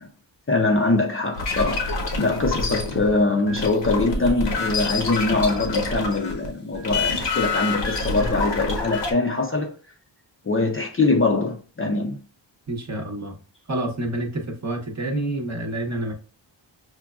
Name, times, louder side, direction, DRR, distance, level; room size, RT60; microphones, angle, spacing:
voice 1, 0.5-9.7 10.4-12.2, left 3 dB, 30° left, 0.5 m, -23 dB
sound 1, 1.4-6.5 6.7-9.1, left 3 dB, 60° left, 0.8 m, -27 dB
voice 2, 12.7-13.4 13.7-16.1, right 1 dB, 35° right, 0.8 m, -28 dB
5.8 x 2.2 x 2.3 m
wide cardioid pair, 90°, 48 cm